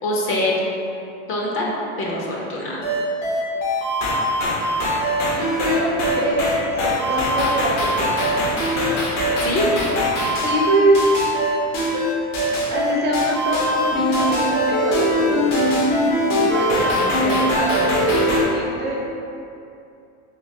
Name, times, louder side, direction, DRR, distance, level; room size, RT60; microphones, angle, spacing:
voice 1, 0.0-0.6 1.3-1.7 2.0-2.8 9.4-9.7, left 1 dB, 35° left, -3 dB, 0.5 m, -24 dB
sound 1, 2.8-18.4, equal, 75° left, 0.9 m, -21 dB
voice 2, 5.3-6.5 6.8-8.4 10.4-11.0 12.7-15.8 16.3-19.0, right 1 dB, 30° right, -4 dB, 0.4 m, -24 dB
3.6 x 2.7 x 2.6 m, 2.7 s
supercardioid pair, 140°, 37 cm